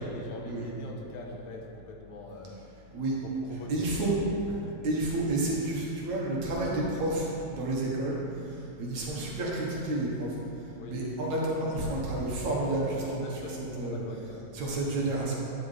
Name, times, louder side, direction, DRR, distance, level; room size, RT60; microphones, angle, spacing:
voice 1, 0.0-2.6 3.2-3.7 4.1-4.2 4.5-4.8 10.8-11.0 12.9-14.5, left 2 dB, 85° left, 1 dB, 2.7 m, -43 dB
voice 2, 3.7-4.2 4.8-10.4 10.9-13.4 13.8-14.0 14.5-15.3, right 2 dB, 60° right, -4 dB, 2.4 m, -30 dB
11.5 x 10.0 x 3.3 m, 2.7 s
omnidirectional pair, 4.1 m